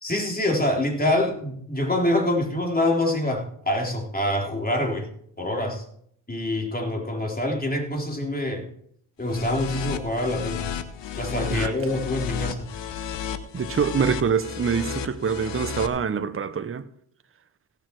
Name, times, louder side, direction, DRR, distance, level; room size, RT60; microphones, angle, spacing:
voice 1, 0.0-5.1 5.4-5.8 6.3-8.7 9.2-10.8 11.1-12.7, left 1 dB, 20° left, 3.8 m, -25 dB
sound 1, 9.2-15.9, left 7 dB, 60° left, 1.4 m, -32 dB
voice 2, 13.5-16.8, right 6 dB, 25° right, 0.9 m, -25 dB
17.0 x 6.9 x 4.6 m
supercardioid pair, 65°, 48 cm